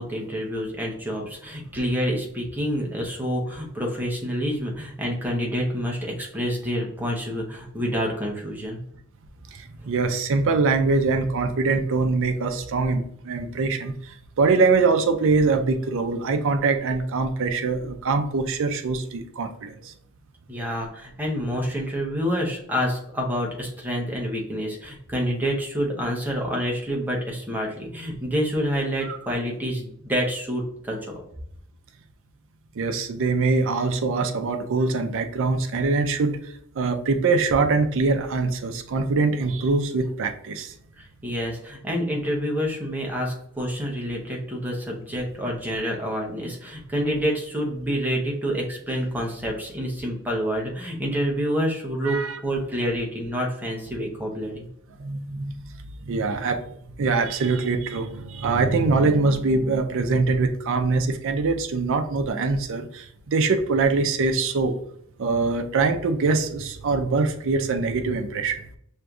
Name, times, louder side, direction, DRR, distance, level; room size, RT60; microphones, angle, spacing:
voice 1, 0.0-8.8 20.5-31.1 41.0-54.7, equal, 10° right, -1 dB, 0.7 m, -28 dB
voice 2, 9.5-19.9 29.1-29.2 32.8-36.4 36.8-40.7 52.0-52.4 55.0-55.6 56.1-56.6 57.0-64.8 65.2-68.6, right 3 dB, 60° right, 6 dB, 0.4 m, -23 dB
6.2 x 2.6 x 2.3 m, 0.69 s
head